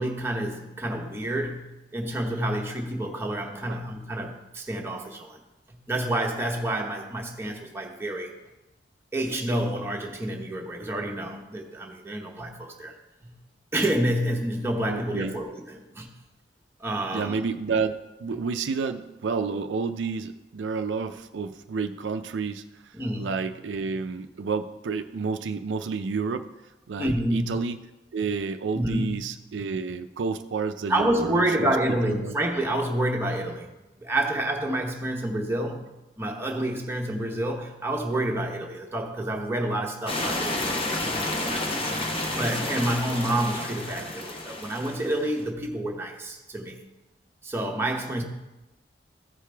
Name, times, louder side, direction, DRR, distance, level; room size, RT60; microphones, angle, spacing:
voice 1, 0.0-5.4 5.7-8.3 9.1-12.9 13.2-13.3 13.7-16.1 16.8-17.4 18.3-18.4 22.9-23.4 27.0-27.5 28.7-29.1 30.9-35.9 36.2-41.9 42.3-46.8 47.4-48.2, right 1 dB, 15° right, 0 dB, 1.0 m, -29 dB
voice 2, 14.9-15.3 17.1-26.5 26.9-27.8 28.1-31.8 32.1-32.3, right 5 dB, 80° right, 8 dB, 0.4 m, -30 dB
sound 1, 40.1-45.4, left 2 dB, 30° left, 0.9 m, -30 dB
14.5 x 4.9 x 3.4 m, 1.0 s
head